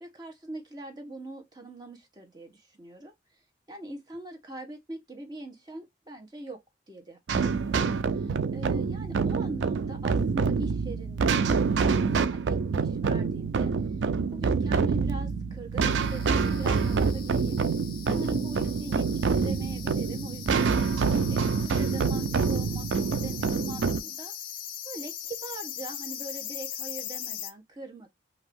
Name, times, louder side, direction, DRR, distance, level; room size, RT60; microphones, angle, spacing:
voice 1, 0.0-3.1 3.7-6.6 6.9-7.9 8.1-13.7 14.3-17.6 18.0-20.8 21.3-24.3 24.8-28.1, right 2 dB, 25° right, 0.9 m, -42 dB
sound 1, 7.3-24.0, right 5 dB, 85° right, 0.4 m, -26 dB
sound 2, 15.8-27.5, left 10 dB, 55° left, 0.5 m, -40 dB
2.6 x 2.4 x 3.4 m
head